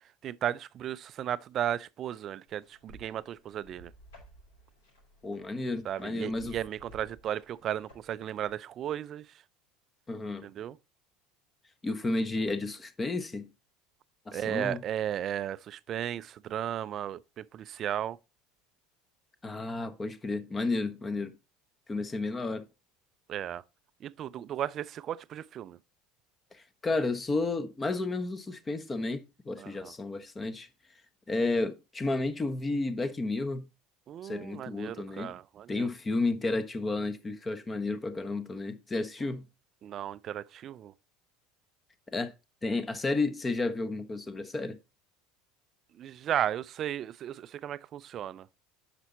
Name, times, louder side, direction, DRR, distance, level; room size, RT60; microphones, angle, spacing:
voice 1, 0.0-3.9 5.8-9.3 10.4-10.8 14.3-18.2 23.3-23.6 24.0-25.8 29.6-29.9 34.1-35.9 39.8-40.9 45.9-48.5, right 10 dB, 40° right, 0.5 m, -35 dB
sound 1, 2.5-8.6, right 1 dB, 75° left, 5.7 m, -56 dB
voice 2, 5.2-6.6 10.1-10.5 11.8-13.5 14.3-14.8 19.4-21.3 21.9-22.6 26.5-30.7 31.3-33.7 34.2-35.3 35.7-39.5 42.1-42.3 42.6-44.8, left 3 dB, 20° left, 1.2 m, -32 dB
9.9 x 6.0 x 4.2 m
figure-of-eight pair, 70°, 0 cm